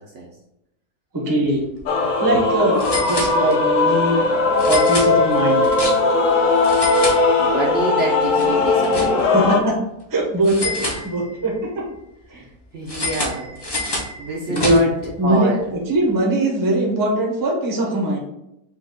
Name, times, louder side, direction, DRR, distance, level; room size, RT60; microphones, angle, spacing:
voice 1, 1.1-1.6 2.2-4.2 4.7-5.7 9.3-9.7 10.1-11.8 12.3-12.4 14.5-14.8 15.2-15.5 15.9-18.2, right 1 dB, 20° right, -1 dB, 0.6 m, -20 dB
sound 1, 1.6-1.8 2.1-2.2 2.8-3.8 4.6-6.3 6.6-7.8 8.1-9.5 10.4-11.5 12.9-15.1, left 1 dB, 40° left, 0.3 m, -28 dB
Male singing / Female singing / Musical instrument, 1.9-9.6, left 3 dB, 65° left, 0.9 m, -18 dB
voice 2, 7.4-9.3 12.7-15.0 15.2-15.6, right 2 dB, 60° right, -2 dB, 0.8 m, -27 dB
4.7 x 2.4 x 3.7 m, 0.84 s
omnidirectional pair, 1.6 m